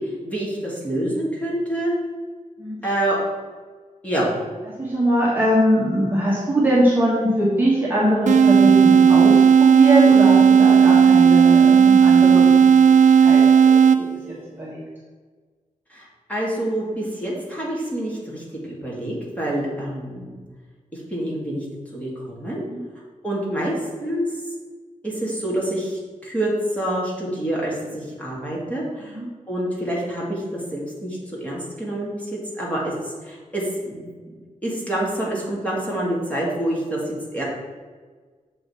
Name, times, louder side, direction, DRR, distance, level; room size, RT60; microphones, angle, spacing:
voice 1, 0.0-1.9 2.8-3.2 4.0-4.3 15.9-20.4 20.9-21.6 21.9-22.6 23.2-23.7 24.0-24.3 25.0-29.2 29.5-32.3 32.5-32.9 33.2-34.1 34.6-37.4, right 1 dB, 10° left, -5 dB, 2.0 m, -27 dB
voice 2, 2.6-2.9 4.6-14.8 22.7-22.8 29.0-29.3, equal, 15° right, -7 dB, 1.4 m, -22 dB
sound 1, 8.3-14.3, right 7 dB, 65° right, 0.4 m, -13 dB
7.1 x 5.1 x 4.8 m, 1.5 s
wide cardioid pair, 180°, 14 cm